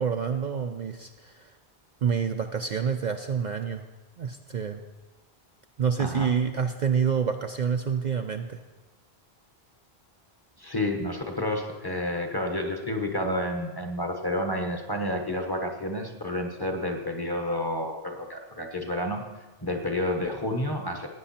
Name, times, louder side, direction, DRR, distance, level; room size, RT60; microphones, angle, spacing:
voice 1, 0.0-1.5 2.0-3.9 4.2-4.8 5.8-8.6, right 6 dB, 50° right, 5 dB, 0.6 m, -27 dB
voice 2, 6.0-6.3 10.6-19.2 19.6-21.1, left 1 dB, 20° left, 3 dB, 1.2 m, -30 dB
16.0 x 9.1 x 4.3 m, 1.2 s
omnidirectional pair, 1.1 m